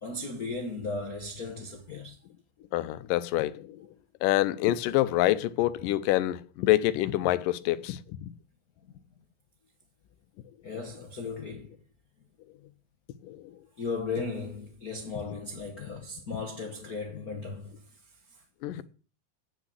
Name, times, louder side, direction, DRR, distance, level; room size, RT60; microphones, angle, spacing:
voice 1, 0.0-2.2 8.9-9.0 10.6-11.8 12.6-12.7 13.8-18.0 18.3-18.4, left 3 dB, 65° left, 0.8 m, -36 dB
voice 2, 2.7-3.9 4.2-8.3 13.2-13.4 18.6-18.8, left 15 dB, 85° left, 2.3 m, -26 dB
9.0 x 6.5 x 7.9 m
omnidirectional pair, 3.8 m